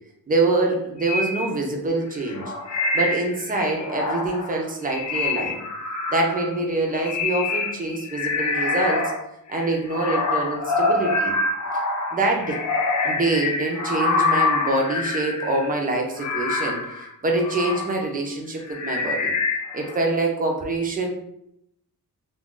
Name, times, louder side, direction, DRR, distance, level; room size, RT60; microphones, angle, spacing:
voice 1, 0.3-2.5 2.9-5.6 6.1-9.1 9.5-11.3 12.1-12.6 13.0-19.3 19.7-21.1, right 2 dB, 25° right, 1 dB, 0.5 m, -25 dB
sound 1, 1.0-1.5 2.2-9.2 9.5-17.9 18.6-20.0, left 3 dB, 50° left, 0.5 m, -26 dB
2.4 x 2.2 x 3.7 m, 0.80 s
wide cardioid pair, 155°, 37 cm